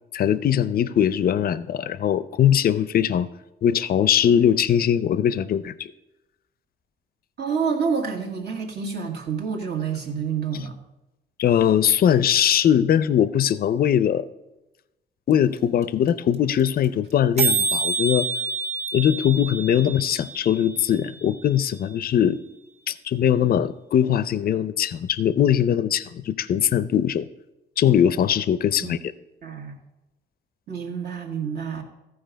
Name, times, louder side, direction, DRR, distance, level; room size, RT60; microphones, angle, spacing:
voice 1, 0.1-3.3 3.6-5.8 11.4-14.2 15.3-18.3 18.9-22.4 22.9-27.3 27.8-29.0, left 9 dB, 50° left, 16 dB, 0.5 m, -21 dB
voice 2, 7.4-10.8 28.8-29.0 29.4-29.8 30.7-31.8, right 6 dB, 55° right, 1 dB, 1.7 m, -28 dB
sound 1, 15.3-15.4 15.6-15.7 15.8-16.1 16.3-16.4 16.6-16.8 17.1-17.2 17.4-21.3, right 4 dB, 35° right, 1.4 m, -27 dB
14.0 x 4.7 x 5.1 m, 0.98 s
cardioid pair, 90°, 20 cm